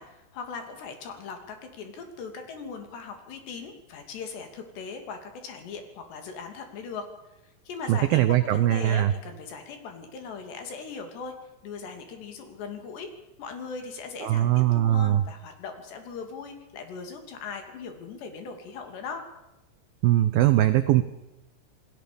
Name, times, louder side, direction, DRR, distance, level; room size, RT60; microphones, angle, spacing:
voice 1, 0.0-7.1 7.4-11.3 11.6-13.1 13.4-19.3, left 5 dB, 65° left, 5 dB, 4.9 m, -39 dB
voice 2, 7.9-9.1 14.2-15.2 20.0-21.0, right 13 dB, 85° right, 11 dB, 2.1 m, -21 dB
28.0 x 19.0 x 7.0 m, 0.92 s
omnidirectional pair, 5.5 m